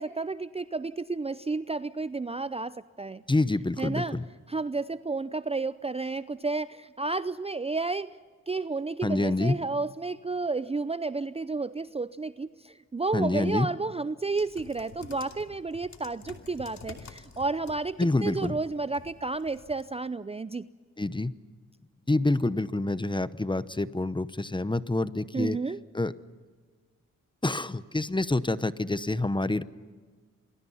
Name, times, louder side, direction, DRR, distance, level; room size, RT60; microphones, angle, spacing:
voice 1, 0.0-3.2 3.8-4.2 4.5-8.2 8.5-20.7 25.3-25.8, right 3 dB, 20° right, 15 dB, 0.6 m, -31 dB
voice 2, 3.3-4.2 9.0-9.6 13.1-13.7 18.0-18.5 21.0-21.3 22.1-25.6 25.9-26.1 27.4-29.6, left 2 dB, 15° left, 15 dB, 0.9 m, -27 dB
sound 1, 14.4-19.8, left 4 dB, 55° left, 2.7 m, -49 dB
28.0 x 22.5 x 5.7 m, 1.5 s
supercardioid pair, 55°, 34 cm